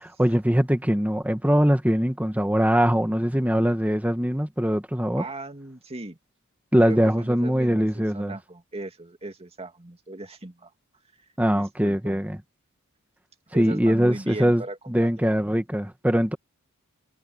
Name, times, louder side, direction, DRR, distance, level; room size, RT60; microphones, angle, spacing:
voice 1, 0.0-5.2 6.7-8.3 11.4-12.4 13.5-14.6 14.9-16.4, equal, 5° right, 1.8 m, -22 dB
voice 2, 5.2-6.2 6.8-10.7 11.5-12.2 13.5-15.1, right 2 dB, 30° right, 2.3 m, -37 dB
head